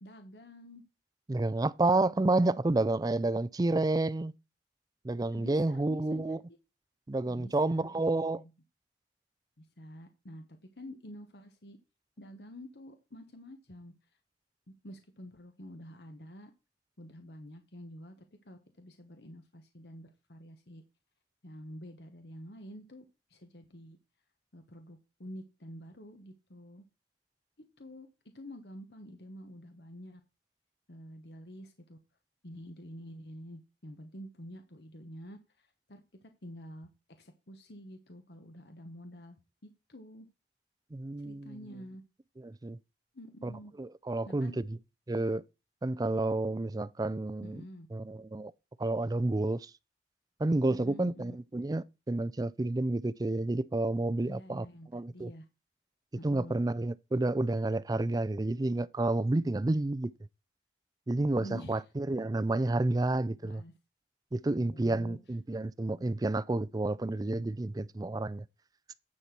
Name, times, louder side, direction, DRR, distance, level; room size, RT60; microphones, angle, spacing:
voice 1, 0.0-0.8 5.3-6.4 7.3-8.5 9.6-11.8 12.2-13.9 14.8-16.5 17.0-20.8 21.4-23.0 23.3-24.0 24.5-26.8 27.8-28.1 28.3-30.2 30.9-32.0 32.4-36.9 37.2-39.4 39.9-40.3 41.2-42.0 43.1-43.7 44.3-44.6 47.4-47.9 50.7-51.4 54.2-55.5 56.2-56.6 61.4-61.8 63.3-63.7 64.6-65.2, equal, 65° left, 1.2 m, -48 dB
voice 2, 1.3-4.3 5.0-6.4 7.1-8.4 40.9-41.6 42.4-42.8 43.4-43.5 43.8-44.8 45.1-45.4 45.8-47.6 47.9-48.5 48.8-49.7 50.4-54.7 54.9-55.3 56.2-60.1 61.1-63.6 64.3-68.4, right 2 dB, 20° right, 0.4 m, -30 dB
9.9 x 4.3 x 6.0 m
head